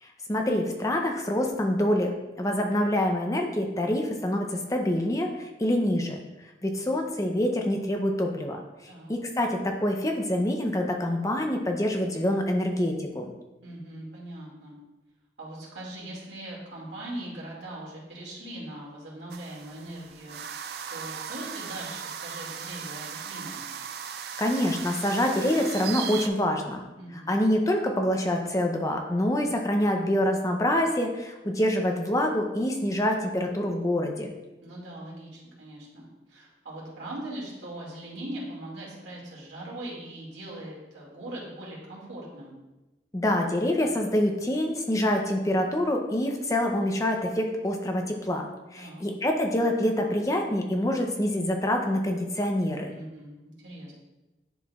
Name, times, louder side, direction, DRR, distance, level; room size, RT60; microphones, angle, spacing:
voice 1, 0.0-6.2 6.6-8.6 9.1-13.3 24.4-26.8 27.1-34.3 43.1-52.9, left 1 dB, 20° left, 3 dB, 0.5 m, -26 dB
voice 2, 13.6-14.8 15.4-23.8 27.0-27.3 34.6-42.6 48.8-49.1 52.9-53.9, right 1 dB, 85° right, -4 dB, 2.2 m, -40 dB
Oiseau nocturne rue du Volga Paris, 19.3-26.3, right 7 dB, 60° right, 0.4 m, -38 dB
10.0 x 4.3 x 2.4 m, 1.1 s
head